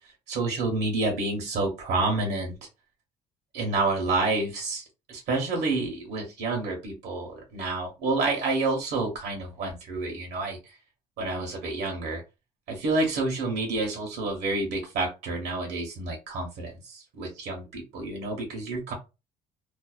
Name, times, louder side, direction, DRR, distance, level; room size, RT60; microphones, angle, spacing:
voice 1, 0.3-2.5 3.5-10.8 11.2-12.2 12.7-18.9, right 3 dB, 75° right, 1 dB, 0.9 m, -29 dB
2.6 x 2.0 x 2.4 m, 0.27 s
cardioid pair, 110°, 17 cm